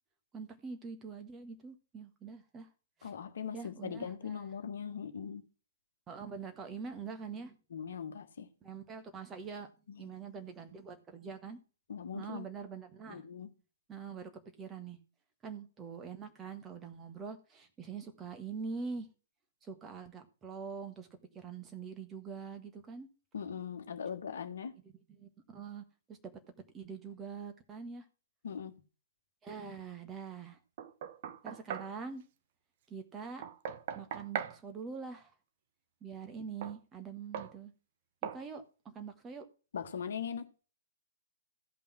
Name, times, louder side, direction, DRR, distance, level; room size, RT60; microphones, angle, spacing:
voice 1, 0.3-2.7 3.0-3.1 3.5-4.5 6.1-7.6 8.6-9.7 10.0-11.6 12.1-13.2 13.9-14.3 14.6-15.0 15.4-19.1 19.6-21.1 21.3-23.1 24.8-24.9 25.2-26.2 26.7-28.0 29.4-30.6 31.4-32.2 32.9-33.4 33.9-35.3 36.0-37.7 38.2-39.4, right 5 dB, 15° right, 1.5 m, -44 dB
voice 2, 3.0-5.5 7.7-8.5 9.9-10.1 11.9-12.5 13.1-13.5 23.3-24.7 28.4-28.8 39.7-40.5, left 7 dB, 55° left, 1.4 m, -40 dB
Knock, 30.8-31.9 33.4-34.6 36.6-36.8 37.3-37.6 38.2-38.4, right 9 dB, 40° right, 0.8 m, -40 dB
14.5 x 5.4 x 6.0 m
figure-of-eight pair, 120°, 0 cm